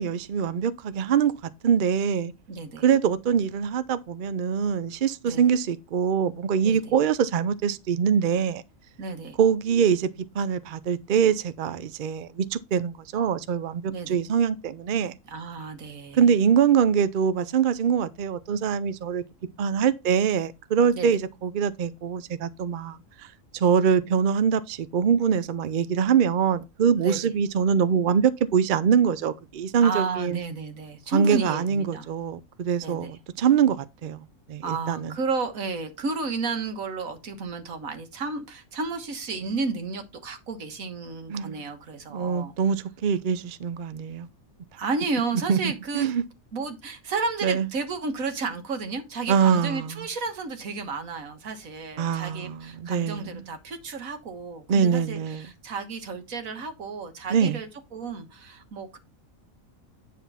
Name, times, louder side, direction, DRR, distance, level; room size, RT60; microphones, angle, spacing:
voice 1, 0.0-1.3 1.6-2.3 2.8-8.6 9.4-10.1 10.3-15.1 16.1-19.2 19.6-23.0 23.5-30.4 31.1-35.1 41.3-41.6 42.1-44.3 45.5-45.6 45.9-46.2 47.4-47.7 49.3-50.0 52.0-53.4 54.7-55.5 57.3-57.6, right 7 dB, 55° right, 0.5 m, -23 dB
voice 2, 2.5-2.8 5.2-5.4 6.6-7.0 9.0-9.4 13.9-14.2 15.3-16.2 20.9-21.1 27.0-27.2 29.8-32.1 32.8-33.2 34.6-42.5 44.8-46.1 46.5-59.0, right 4 dB, 75° right, 1.7 m, -32 dB
9.4 x 3.7 x 5.6 m
omnidirectional pair, 1.5 m